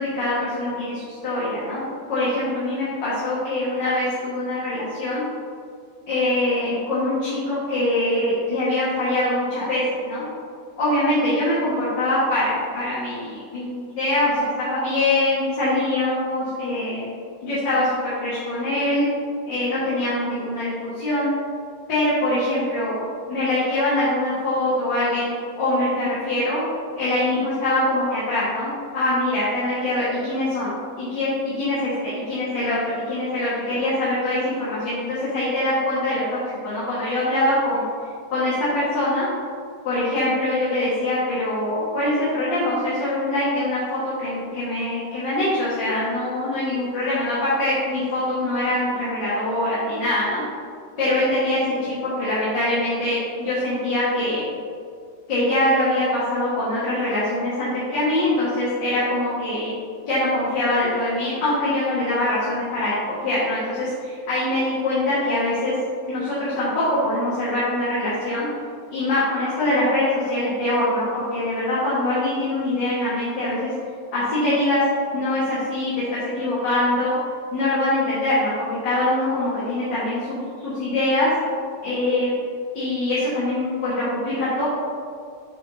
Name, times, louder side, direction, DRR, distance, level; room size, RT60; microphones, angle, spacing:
voice 1, 0.0-1.8 2.1-5.2 6.1-10.2 10.8-17.1 17.4-19.1 19.5-21.3 21.9-23.0 23.3-26.6 27.0-37.9 38.3-39.3 39.8-50.4 51.0-54.4 55.3-59.7 60.1-65.7 66.1-68.5 68.9-73.7 74.1-74.8 75.1-77.1 77.5-81.3 81.8-82.3 82.7-84.7, left 1 dB, 80° left, -10 dB, 2.2 m, -23 dB
7.5 x 4.0 x 4.1 m, 2.3 s
omnidirectional pair, 1.9 m